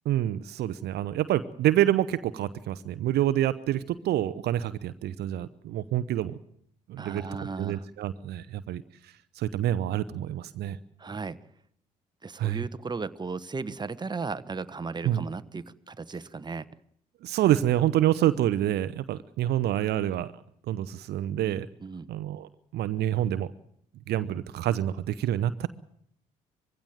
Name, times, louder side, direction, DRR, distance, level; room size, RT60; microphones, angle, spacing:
voice 1, 0.0-6.4 6.9-7.2 7.6-8.8 9.4-10.8 12.4-12.6 15.0-15.2 17.2-20.3 20.7-21.7 22.1-23.5 24.1-25.7, right 12 dB, 65° right, 14 dB, 0.8 m, -27 dB
voice 2, 7.0-7.9 11.0-11.4 12.2-16.6 21.4-22.1, right 4 dB, 25° right, 12 dB, 1.2 m, -36 dB
22.0 x 16.0 x 9.2 m, 0.69 s
hypercardioid pair, 55°, 18 cm